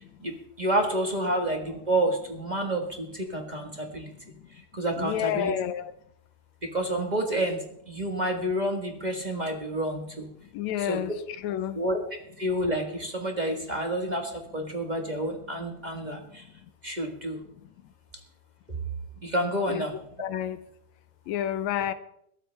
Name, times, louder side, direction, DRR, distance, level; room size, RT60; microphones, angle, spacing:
voice 1, 0.2-4.1 4.7-5.5 6.6-10.3 10.8-11.0 11.7-12.0 12.4-16.4 16.8-17.4 19.2-19.9, right 1 dB, 40° right, 3 dB, 0.6 m, -29 dB
voice 2, 5.0-5.9 10.5-11.1 11.4-11.8 19.7-19.8 20.2-20.6 21.3-21.9, left 10 dB, 80° left, 12 dB, 2.1 m, -29 dB
21.5 x 12.5 x 3.4 m, 0.73 s
omnidirectional pair, 3.3 m